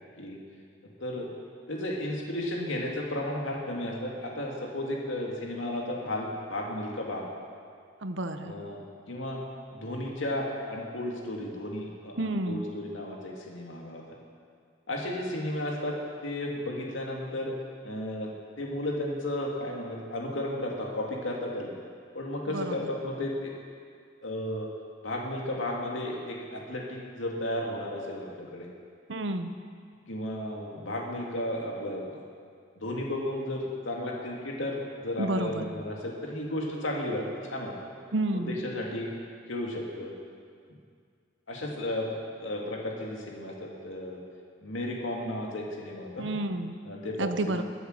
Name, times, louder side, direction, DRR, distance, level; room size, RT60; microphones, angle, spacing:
voice 1, 1.7-7.3 8.4-9.4 9.7-14.2 14.9-17.5 17.8-18.3 18.6-21.7 22.1-23.5 24.2-24.7 25.0-28.7 30.1-32.0 32.8-37.7 38.3-39.1 39.5-40.1 41.5-42.1 42.4-44.2 44.6-46.3 46.9-47.5, left 1 dB, 85° left, -2 dB, 2.3 m, -34 dB
voice 2, 8.0-8.5 12.2-12.7 22.5-22.8 29.1-29.5 35.2-35.7 38.1-38.6 46.2-46.8 47.2-47.6, right 1 dB, 70° right, 8 dB, 0.9 m, -30 dB
22.0 x 8.2 x 6.5 m, 2.2 s
head